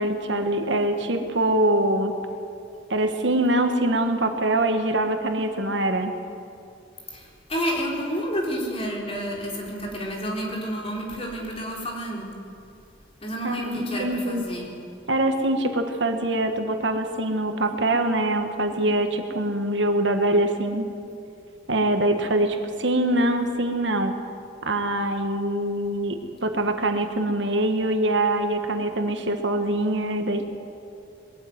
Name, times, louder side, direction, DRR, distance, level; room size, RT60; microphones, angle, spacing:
voice 1, 0.0-2.1 2.9-6.1 13.4-14.4 15.1-20.9 21.7-24.1 24.6-30.4, right 1 dB, 70° right, 6 dB, 1.6 m, -24 dB
voice 2, 7.1-12.3 13.2-14.8 22.9-23.4, equal, 30° left, -2 dB, 4.0 m, -30 dB
21.5 x 13.5 x 9.6 m, 2.7 s
head